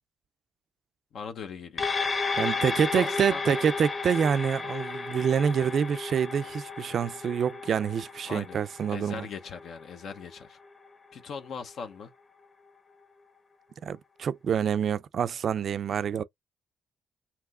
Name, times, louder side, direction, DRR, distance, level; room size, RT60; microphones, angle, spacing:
voice 1, 1.1-1.9 3.0-3.4 8.3-8.6 8.9-10.6 11.1-12.1, left 6 dB, 65° left, 0.8 m, -40 dB
sound 1, 1.8-10.5 10.9-11.0, left 4 dB, 35° left, 1.1 m, -33 dB
voice 2, 2.4-9.3 13.8-16.2, right 7 dB, 55° right, 0.4 m, -27 dB
5.9 x 2.9 x 2.4 m
cardioid pair, 90°, 0 cm